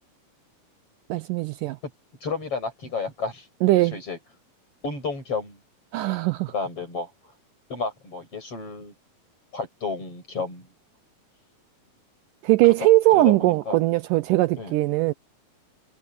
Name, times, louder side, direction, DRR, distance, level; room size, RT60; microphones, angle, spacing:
voice 1, 1.1-1.8 3.6-4.0 5.9-6.5 12.4-15.1, right 18 dB, 80° right, 2.1 m, -20 dB
voice 2, 2.2-3.5 3.9-4.2 4.8-5.6 6.5-7.1 7.7-8.9 9.5-10.7 12.6-13.8 14.6-14.8, left 4 dB, 40° left, 8.8 m, -32 dB
omnidirectional pair, 4.1 m